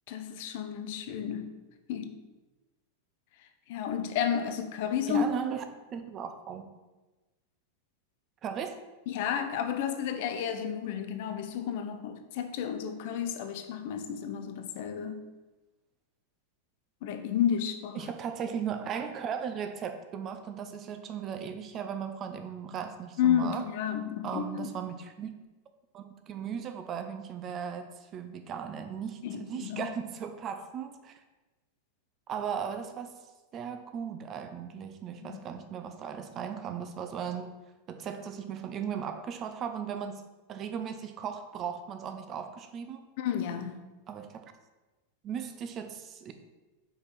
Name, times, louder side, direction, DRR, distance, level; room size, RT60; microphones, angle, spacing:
voice 1, 0.1-1.5 1.9-2.2 3.7-5.2 9.1-15.2 17.0-18.1 23.2-24.7 29.2-29.9 35.2-35.4 43.2-43.8, left 9 dB, 50° left, 8 dB, 0.5 m, -31 dB
voice 2, 5.1-5.6 5.9-6.7 8.4-8.8 17.9-23.6 24.2-25.3 25.9-31.2 32.3-33.1 33.5-37.5 37.9-40.2 40.5-43.0 44.1-44.5 45.2-46.3, right 7 dB, 30° right, 8 dB, 0.6 m, -37 dB
5.3 x 4.6 x 4.1 m, 1.1 s
figure-of-eight pair, 90°, 0 cm